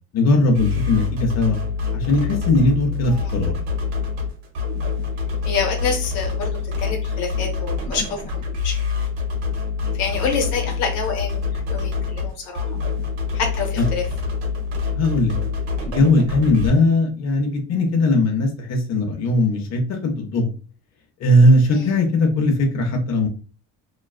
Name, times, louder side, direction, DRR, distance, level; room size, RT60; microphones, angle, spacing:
voice 1, 0.1-1.6 1.9-3.5 14.9-15.3 15.8-20.5 21.2-23.3, left 1 dB, 50° left, 2 dB, 0.8 m, -19 dB
sound 1, 0.5-16.7, left 5 dB, 80° right, 0.8 m, -26 dB
voice 2, 5.4-8.7 9.9-12.7 13.3-14.1 21.7-21.9, left 5 dB, 80° left, 1 dB, 0.9 m, -27 dB
2.3 x 2.2 x 2.3 m, 0.35 s
supercardioid pair, 75°, 34 cm